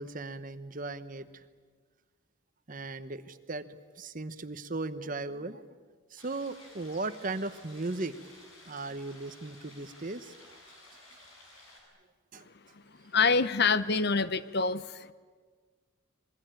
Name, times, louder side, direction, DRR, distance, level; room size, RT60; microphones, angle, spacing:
voice 1, 0.0-1.4 2.7-3.7 4.0-5.6 6.1-8.2 8.7-10.6 12.3-12.4, right 2 dB, 40° right, 12 dB, 1.0 m, -37 dB
sound 1, 6.2-11.8, left 2 dB, 75° left, 7.5 m, -54 dB
voice 2, 13.1-15.1, left 4 dB, 50° left, 15 dB, 0.8 m, -26 dB
26.0 x 22.0 x 9.0 m, 1.5 s
head